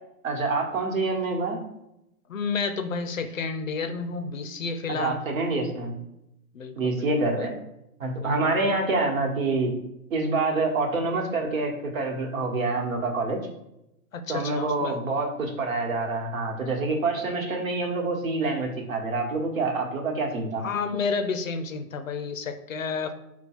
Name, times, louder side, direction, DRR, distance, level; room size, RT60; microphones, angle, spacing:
voice 1, 0.2-1.6 4.9-6.0 6.8-7.5 8.0-9.7 10.1-13.4 14.3-20.6, right 3 dB, 60° right, 1 dB, 1.3 m, -26 dB
voice 2, 2.3-5.2 6.5-7.1 7.4-7.5 8.2-8.4 14.1-15.0 20.6-23.1, left 5 dB, 60° left, 8 dB, 0.5 m, -30 dB
5.3 x 2.3 x 4.4 m, 0.83 s
hypercardioid pair, 175°, 46 cm